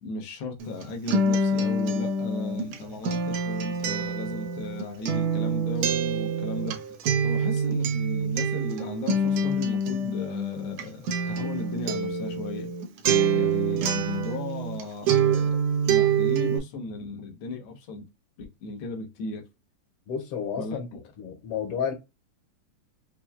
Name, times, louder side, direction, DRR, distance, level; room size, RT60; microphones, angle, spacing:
voice 1, 0.0-7.0 7.2-12.7 13.3-15.6 15.9-18.1 18.4-19.5 20.5-21.0, left 2 dB, 90° left, 1.1 m, -36 dB
Acoustic guitar, 0.6-14.8 15.1-16.6, right 4 dB, 75° right, 1.7 m, -26 dB
voice 2, 20.1-20.9 21.2-21.9, left 7 dB, 60° left, 1.7 m, -31 dB
5.8 x 2.2 x 2.2 m
omnidirectional pair, 3.5 m